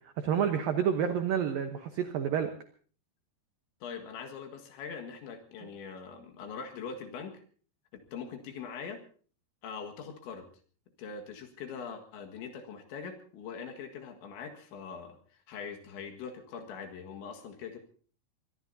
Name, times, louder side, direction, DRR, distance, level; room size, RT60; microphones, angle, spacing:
voice 1, 0.2-2.5, right 8 dB, 80° right, 7 dB, 2.0 m, -29 dB
voice 2, 3.8-7.4 8.1-9.0 9.6-10.5 11.0-17.8, left 6 dB, 70° left, 3 dB, 4.0 m, -42 dB
24.5 x 21.0 x 2.7 m, 0.44 s
omnidirectional pair, 5.6 m